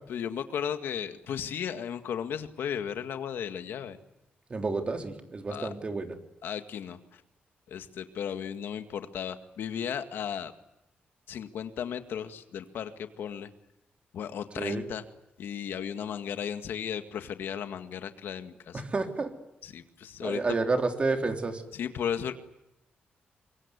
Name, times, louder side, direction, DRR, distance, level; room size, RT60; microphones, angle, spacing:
voice 1, 0.1-4.0 5.5-5.7 6.4-7.2 7.7-10.5 11.3-12.9 13.2-13.5 14.1-15.0 15.4-18.8 19.6-20.4 21.7-22.3, left 8 dB, 90° left, 8 dB, 2.0 m, -35 dB
voice 2, 4.5-6.2 14.6-14.9 18.7-19.3 20.2-21.6, right 3 dB, 30° right, 5 dB, 3.4 m, -30 dB
25.0 x 23.5 x 9.7 m, 0.88 s
cardioid pair, 120°, 4 cm